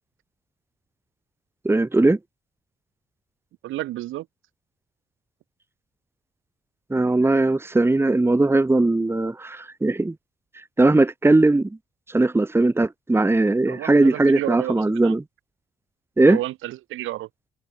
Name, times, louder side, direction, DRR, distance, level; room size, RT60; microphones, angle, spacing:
voice 1, 1.6-2.2 6.9-10.1 10.8-11.8 12.1-15.2 16.2-16.4, right 2 dB, 10° right, 1.2 m, -19 dB
voice 2, 3.6-4.3 13.7-15.1 16.3-17.3, right 15 dB, 85° right, 1.4 m, -31 dB
cardioid pair, 90°, 20 cm